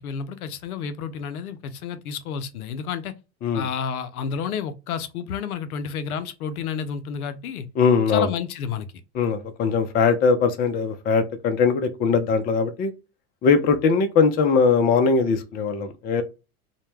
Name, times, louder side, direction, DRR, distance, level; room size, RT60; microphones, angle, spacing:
voice 1, 0.0-3.1 3.5-7.7 8.1-8.9, left 7 dB, 80° left, 0.5 m, -30 dB
voice 2, 7.8-8.3 9.1-12.9 13.4-16.2, left 5 dB, 25° left, 0.3 m, -20 dB
2.1 x 2.1 x 3.0 m
hypercardioid pair, 85°, 44 cm